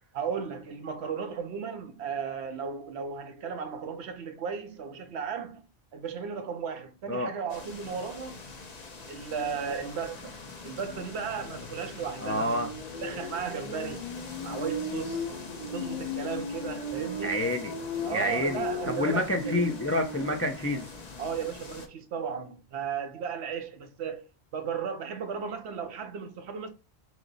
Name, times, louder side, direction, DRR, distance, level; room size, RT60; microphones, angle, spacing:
voice 1, 0.1-5.6 5.9-8.4 9.1-10.4 10.6-12.6 13.0-14.0 14.4-15.3 15.7-17.4 18.1-19.6 21.2-24.3 24.5-26.7, right 6 dB, 75° right, 1.0 m, -35 dB
sound 1, 7.5-21.9, left 2 dB, 45° left, 0.8 m, -38 dB
voice 2, 12.2-12.7 17.2-17.7 18.0-20.9, left 1 dB, 20° left, 0.4 m, -28 dB
6.1 x 2.1 x 4.0 m
omnidirectional pair, 1.1 m